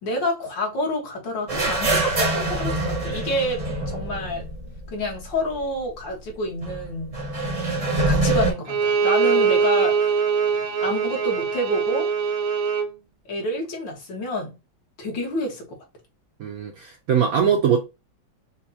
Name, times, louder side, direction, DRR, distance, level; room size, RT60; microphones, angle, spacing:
voice 1, 0.0-4.5 4.9-7.1 8.1-10.2 10.8-12.1 13.3-14.6 15.0-15.8 17.4-17.5, left 1 dB, 70° left, 2.1 m, -28 dB
sound 1, 1.5-5.2 5.5-5.6 6.6-8.5, right 2 dB, 30° right, 0.6 m, -25 dB
Bowed string instrument, 8.7-12.9, right 6 dB, 90° right, 0.5 m, -22 dB
voice 2, 16.4-17.8, right 7 dB, 65° right, 0.9 m, -21 dB
5.6 x 2.3 x 2.7 m
omnidirectional pair, 2.2 m